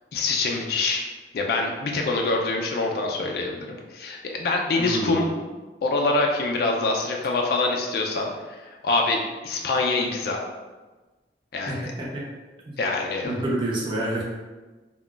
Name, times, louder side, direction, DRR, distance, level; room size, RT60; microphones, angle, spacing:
voice 1, 0.1-1.0 1.3-5.3 5.8-10.4 11.5-11.9 12.8-13.4, left 3 dB, 60° left, 1 dB, 0.3 m, -25 dB
voice 2, 4.8-5.3 11.7-12.2 13.2-14.2, right 1 dB, 30° right, -4 dB, 0.6 m, -28 dB
2.3 x 2.2 x 3.7 m, 1.3 s
head